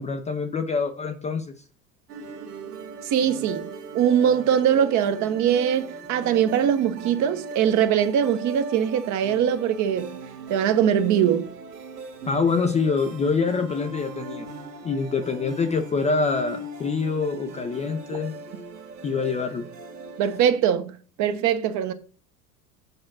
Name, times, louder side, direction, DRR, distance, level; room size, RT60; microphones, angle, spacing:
voice 1, 0.0-1.5 12.3-14.5 14.8-18.4 19.0-19.7, left 4 dB, 15° left, 0.6 m, -25 dB
sound 1, 2.1-20.5, right 3 dB, 70° right, 1.9 m, -39 dB
voice 2, 3.0-3.7 3.9-10.2 10.5-11.5 20.2-21.9, right 9 dB, 35° right, 1.0 m, -22 dB
8.0 x 4.2 x 6.1 m
figure-of-eight pair, 80°, 48 cm